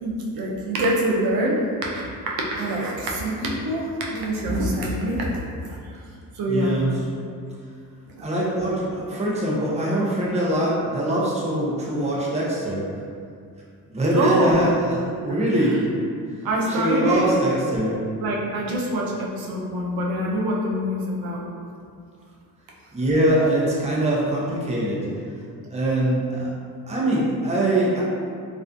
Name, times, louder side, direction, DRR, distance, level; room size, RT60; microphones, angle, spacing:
voice 1, 0.0-2.1 2.5-5.7 6.4-6.8 8.1-8.3 14.1-14.6 15.2-15.3 16.4-17.3 18.2-21.4, right 1 dB, 80° right, -3 dB, 0.6 m, -25 dB
voice 2, 6.5-7.0 8.2-12.8 13.9-15.8 16.7-18.0 22.9-25.0 25.7-26.5 26.9-28.0, right 1 dB, 20° right, -6 dB, 0.6 m, -23 dB
2.5 x 2.4 x 2.3 m, 2.3 s
cardioid pair, 75°, 36 cm